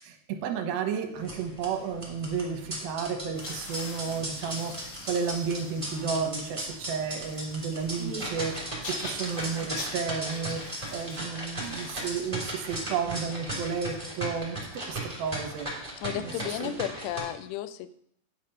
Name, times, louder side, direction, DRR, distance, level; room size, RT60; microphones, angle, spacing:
voice 1, 0.0-10.6 10.9-14.6 14.9-15.7 16.1-16.8, right 6 dB, 70° right, 4 dB, 2.7 m, -32 dB
sound 1, 1.2-17.2, right 1 dB, 10° right, 2.3 m, -37 dB
sound 2, 3.3-14.3, left 3 dB, 65° left, 1.4 m, -45 dB
voice 2, 16.0-17.9, left 12 dB, 85° left, 13 dB, 2.7 m, -33 dB
9.9 x 5.9 x 5.6 m, 0.72 s
omnidirectional pair, 5.0 m